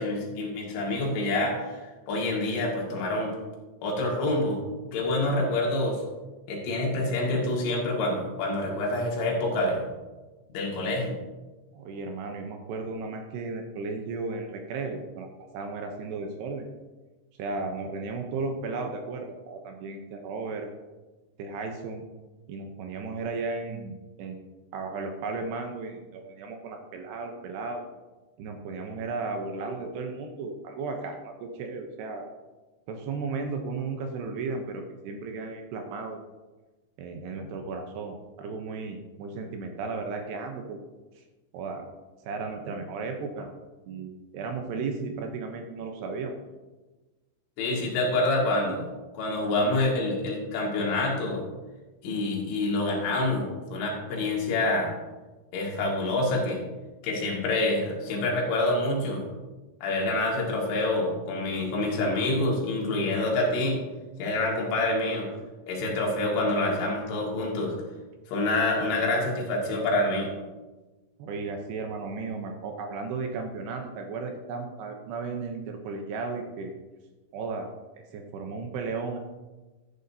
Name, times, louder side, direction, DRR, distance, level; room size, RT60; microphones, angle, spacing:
voice 1, 0.0-1.8 2.1-3.4 3.8-4.6 4.9-6.0 6.5-9.8 10.5-11.2 47.6-48.9 49.1-51.5 52.0-55.0 55.5-56.6 57.0-59.2 59.8-63.8 64.2-65.3 65.7-67.7 68.3-70.3, left 2 dB, 90° left, -2 dB, 4.5 m, -27 dB
voice 2, 11.7-16.7 17.4-20.7 21.4-22.1 22.5-24.5 24.7-27.8 28.4-32.3 32.9-36.2 37.0-40.8 41.2-41.3 41.5-41.9 42.2-43.5 43.9-46.4 71.2-76.7 77.3-77.7 78.1-79.2, right 4 dB, 75° right, 4 dB, 2.7 m, -35 dB
13.5 x 9.1 x 2.7 m, 1.2 s
omnidirectional pair, 5.3 m